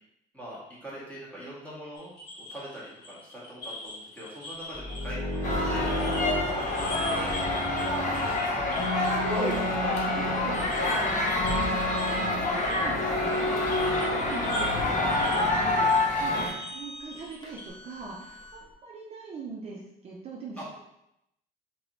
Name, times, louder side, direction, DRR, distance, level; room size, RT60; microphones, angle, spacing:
voice 1, 0.3-2.1 2.5-5.9 6.3-8.8 16.1-16.5 20.6-20.8, equal, 10° left, -8 dB, 1.5 m, -42 dB
sound 1, 1.9-6.3 6.5-10.0 10.3-17.7, left 2 dB, 75° left, 1.4 m, -42 dB
sound 2, 4.7-8.3 8.8-10.9 11.4-12.6 12.9-14.2 14.6-15.8 16.3-17.2 17.4-18.6, left 1 dB, 30° left, 1.0 m, -33 dB
sound 3, 5.4-16.5, left 2 dB, 45° left, 0.7 m, -27 dB
voice 2, 9.3-16.4 16.7-20.6, right 3 dB, 40° right, -3 dB, 0.5 m, -41 dB
3.2 x 3.0 x 2.6 m, 0.82 s
cardioid pair, 110°, 17 cm